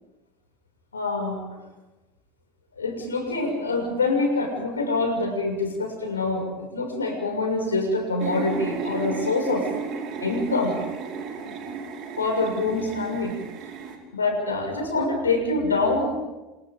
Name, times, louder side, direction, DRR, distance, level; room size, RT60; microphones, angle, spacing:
voice 1, 0.9-1.4 2.7-9.7 10.2-10.8 11.4-11.6 12.2-13.7 14.1-16.2, left 3 dB, 85° left, 3 dB, 6.8 m, -25 dB
sound 1, 8.2-14.0, right 5 dB, 50° right, 5.0 m, -33 dB
29.5 x 28.0 x 3.9 m, 1.1 s
hypercardioid pair, 75°, 0 cm